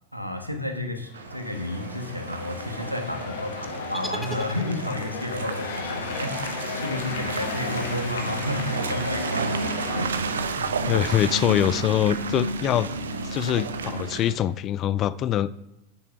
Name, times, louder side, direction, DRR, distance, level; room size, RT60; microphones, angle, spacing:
voice 1, 0.1-9.6 9.9-10.1, left 1 dB, 90° right, 6 dB, 1.3 m, -31 dB
sound 1, 1.1-10.0, left 5 dB, 55° left, 1.5 m, -35 dB
Car passing by / Engine, 1.1-14.3, right 3 dB, 70° right, 0.8 m, -32 dB
sound 2, 3.9-5.2, equal, ahead, 0.8 m, -38 dB
voice 2, 10.6-12.9 13.2-15.6, left 11 dB, 30° left, 18 dB, 0.4 m, -24 dB
7.9 x 7.3 x 5.8 m, 0.96 s
figure-of-eight pair, 90°, 0 cm